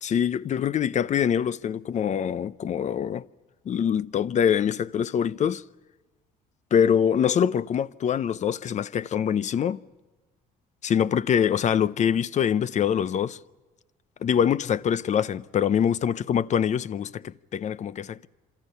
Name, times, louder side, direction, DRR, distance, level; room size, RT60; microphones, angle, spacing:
voice 1, 0.0-3.2 3.7-5.6 6.7-9.8 10.8-13.4 14.2-18.3, left 8 dB, 45° left, 0.7 m, -24 dB
28.5 x 27.0 x 5.6 m
cardioid pair, 110°, 17 cm